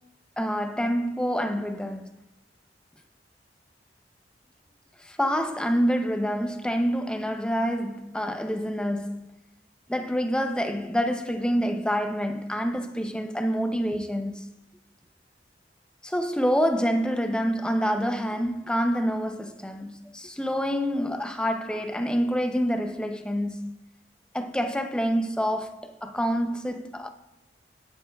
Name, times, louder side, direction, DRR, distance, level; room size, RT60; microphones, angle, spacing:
voice 1, 0.4-2.1 5.0-9.3 9.9-14.4 16.0-23.8 24.3-27.1, equal, 5° left, 0.6 m, -27 dB
18.5 x 8.1 x 2.3 m
head